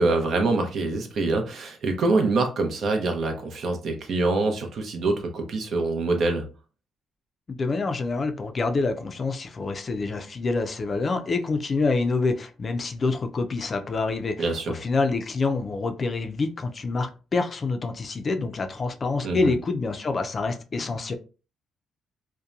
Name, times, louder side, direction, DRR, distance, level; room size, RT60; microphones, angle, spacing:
voice 1, 0.0-6.4 14.4-14.8 19.2-19.5, right 3 dB, 65° right, 0.6 m, -25 dB
voice 2, 7.5-21.1, left 3 dB, 40° left, 0.4 m, -27 dB
2.7 x 2.1 x 2.4 m
cardioid pair, 90°, 0 cm